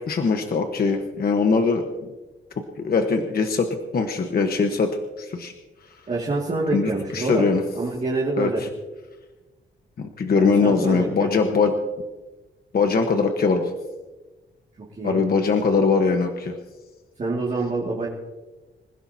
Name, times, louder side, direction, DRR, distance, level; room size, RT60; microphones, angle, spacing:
voice 1, 0.1-2.1 2.8-3.7 3.9-4.9 5.2-5.5 6.7-7.6 8.4-8.5 10.0-11.7 12.7-13.7 15.0-16.5, left 4 dB, 50° left, 4 dB, 1.2 m, -21 dB
voice 2, 6.1-7.5 7.7-8.6 10.3-11.7 14.9-15.2 17.2-18.1, right 3 dB, 35° right, -4 dB, 2.2 m, -26 dB
27.0 x 16.0 x 2.8 m, 1.2 s
wide cardioid pair, 175°, 21 cm